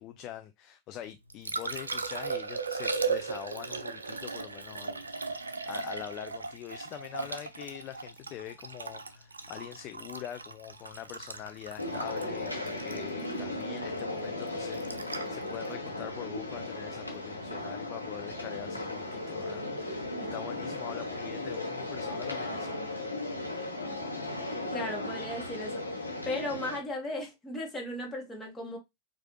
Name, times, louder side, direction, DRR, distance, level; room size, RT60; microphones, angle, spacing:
voice 1, 0.0-23.2, left 11 dB, 35° left, 0.3 m, -44 dB
Liquid, 1.0-17.1 19.9-20.1, right 4 dB, 75° right, 0.4 m, -37 dB
sound 1, 11.8-26.8, left 2 dB, 85° left, 1.0 m, -36 dB
voice 2, 24.7-28.8, left 1 dB, 15° left, 1.4 m, -36 dB
4.7 x 2.5 x 3.0 m
figure-of-eight pair, 90°, 0 cm